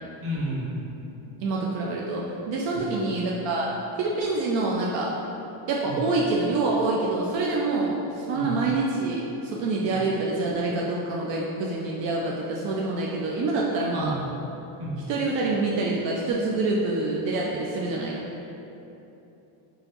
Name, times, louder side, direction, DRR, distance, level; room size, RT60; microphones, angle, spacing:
voice 1, 0.2-0.7 2.7-3.0 5.8-6.1 8.4-8.7 9.9-10.0 13.9-14.3 14.8-15.0, right 1 dB, 30° right, -6 dB, 0.7 m, -32 dB
voice 2, 1.4-3.7 4.0-5.2 5.7-14.2 15.1-18.2, right 3 dB, 65° right, -3 dB, 0.5 m, -26 dB
3.8 x 2.9 x 2.9 m, 3.0 s
cardioid pair, 170°, 48 cm